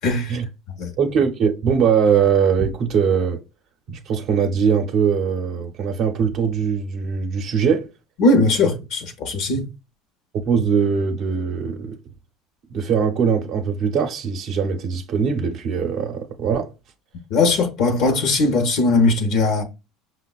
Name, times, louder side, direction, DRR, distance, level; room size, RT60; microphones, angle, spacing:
voice 1, 0.0-0.4 0.7-0.9 8.2-9.7 17.3-19.6, left 2 dB, 60° left, 0.7 m, -19 dB
voice 2, 1.0-3.4 3.9-7.9 10.5-12.0 12.7-16.7, right 6 dB, 55° right, 0.6 m, -21 dB
5.3 x 2.0 x 2.3 m
supercardioid pair, 105°, 0 cm